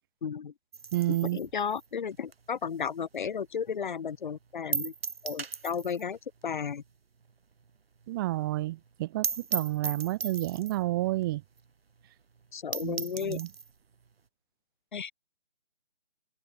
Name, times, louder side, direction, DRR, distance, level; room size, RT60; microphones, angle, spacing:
voice 1, 0.2-0.5 1.1-4.9 5.2-6.2 6.4-6.8 12.5-13.4 14.9-15.1, left 7 dB, 45° left, 5.2 m, -33 dB
sound 1, 0.7-3.4 3.7-3.8 4.1-4.2 4.7-6.1 6.4-6.5 6.8-6.9 7.3-7.4 7.6-7.7 8.0-8.1 8.4-8.5 8.9-9.0 9.2-10.9 11.6-11.7 12.0-12.1 12.4-12.5 12.7-13.7, right 5 dB, 60° right, 2.5 m, -36 dB
voice 2, 0.9-1.4 8.1-11.4 12.8-13.5, right 16 dB, 20° right, 2.6 m, -30 dB
open air
figure-of-eight pair, 160°, 33 cm